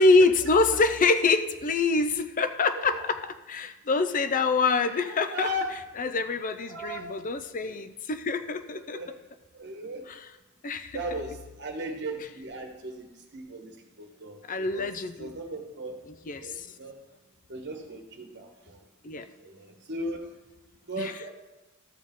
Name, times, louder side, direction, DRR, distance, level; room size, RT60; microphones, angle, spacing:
voice 1, 0.0-5.5 6.0-9.0 10.1-10.2 10.6-11.0 14.5-15.3 16.3-16.7 19.0-19.3 21.0-21.3, left 3 dB, 40° left, 10 dB, 0.5 m, -25 dB
voice 2, 2.7-3.1 4.8-5.7 6.7-7.1 8.7-9.1 9.5-10.0 10.9-14.9 15.2-15.9 16.4-17.0 17.5-18.8 19.4-20.3 20.9-21.3, right 1 dB, 55° right, 3 dB, 1.3 m, -37 dB
13.5 x 6.3 x 3.7 m, 1.1 s
head